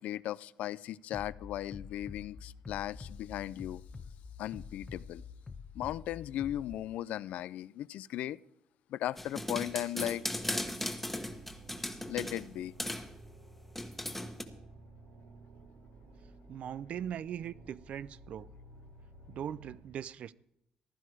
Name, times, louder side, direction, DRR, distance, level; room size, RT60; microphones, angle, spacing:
voice 1, 0.0-3.8 4.4-5.2 5.7-8.4 8.9-10.2 12.1-12.7, left 13 dB, 75° left, 0.4 m, -37 dB
Bass drum, 1.1-6.7, left 5 dB, 25° left, 0.9 m, -46 dB
sound 1, 9.2-12.5 12.8-13.1 13.7-14.4, left 1 dB, 5° left, 1.3 m, -37 dB
sound 2, 10.2-19.8, right 2 dB, 90° right, 4.9 m, -54 dB
voice 2, 16.5-18.5 19.3-20.3, right 9 dB, 65° right, 0.5 m, -40 dB
15.0 x 11.5 x 4.9 m
cardioid pair, 85°, 2 cm